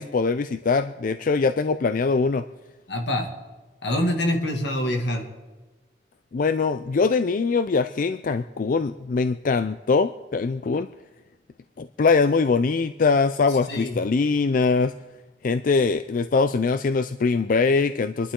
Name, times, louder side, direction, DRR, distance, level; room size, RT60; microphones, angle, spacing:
voice 1, 0.0-2.4 6.3-10.9 11.8-14.9 15.4-18.3, left 4 dB, 50° left, 11 dB, 0.4 m, -22 dB
voice 2, 2.9-3.3 3.8-5.3 13.7-14.0, left 1 dB, 80° left, 3 dB, 2.0 m, -25 dB
27.5 x 11.5 x 3.7 m, 1.2 s
head